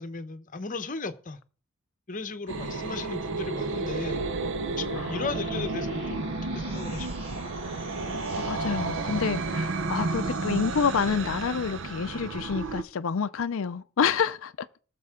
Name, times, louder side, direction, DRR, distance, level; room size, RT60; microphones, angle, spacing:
voice 1, 0.0-1.4 2.1-4.2 4.8-6.3 6.5-7.4, left 3 dB, 40° left, 0.9 m, -36 dB
sound 1, 2.5-12.8, right 3 dB, 60° right, 0.7 m, -32 dB
sound 2, 4.8-8.6, right 1 dB, 25° right, 2.7 m, -45 dB
voice 2, 8.3-14.5, left 6 dB, 65° left, 0.5 m, -28 dB
19.0 x 6.6 x 3.7 m
head